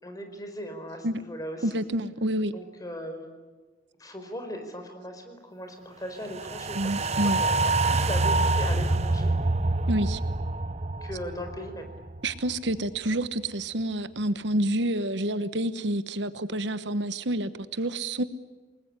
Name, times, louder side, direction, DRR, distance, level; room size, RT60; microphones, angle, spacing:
voice 1, 0.0-1.8 2.5-3.3 4.0-7.6 7.8-9.3 11.0-11.9, equal, 20° left, 6 dB, 4.6 m, -38 dB
voice 2, 1.6-2.5 6.7-7.4 9.9-10.2 12.2-18.2, right 1 dB, 70° right, 12 dB, 1.1 m, -28 dB
sound 1, 6.3-12.7 13.1-13.2, right 2 dB, 35° right, 0.8 m, -26 dB
28.5 x 20.5 x 9.8 m, 1.3 s
head